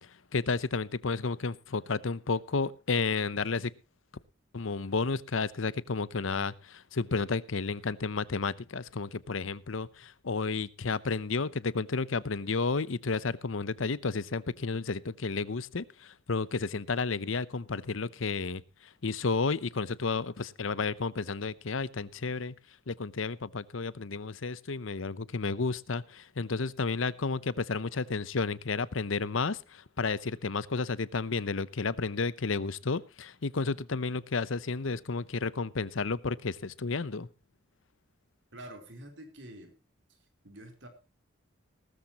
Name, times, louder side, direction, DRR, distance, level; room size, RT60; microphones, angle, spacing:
voice 1, 0.0-3.7 4.5-18.6 19.0-22.5 22.9-37.3, left 4 dB, 85° left, 0.8 m, -32 dB
voice 2, 38.5-39.7 40.4-40.9, right 1 dB, 70° right, 3.8 m, -47 dB
18.5 x 13.5 x 3.0 m
head